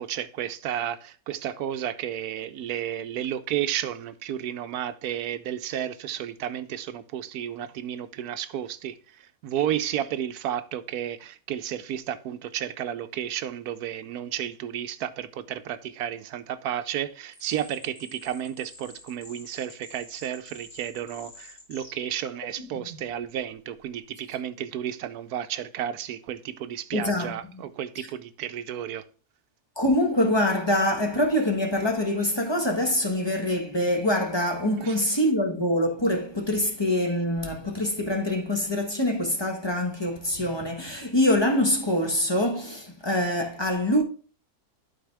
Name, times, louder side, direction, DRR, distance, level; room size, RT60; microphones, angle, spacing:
voice 1, 0.0-29.0 34.8-35.0, right 10 dB, 80° right, 1.2 m, -32 dB
sound 1, 17.3-23.2, left 1 dB, 35° left, 2.9 m, -47 dB
voice 2, 26.9-27.6 29.8-44.0, left 1 dB, 20° left, 1.3 m, -25 dB
11.5 x 4.3 x 3.4 m
omnidirectional pair, 1.6 m